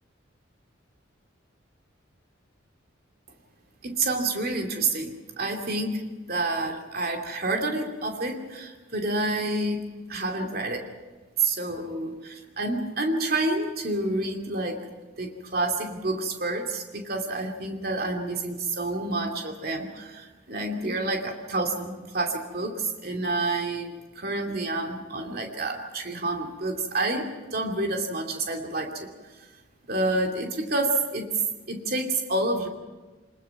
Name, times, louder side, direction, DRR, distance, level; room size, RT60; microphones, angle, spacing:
voice 1, 3.8-10.9 11.4-14.9 15.2-29.5 29.9-32.7, right 2 dB, 50° right, 3 dB, 2.6 m, -29 dB
25.5 x 21.0 x 5.9 m, 1.2 s
head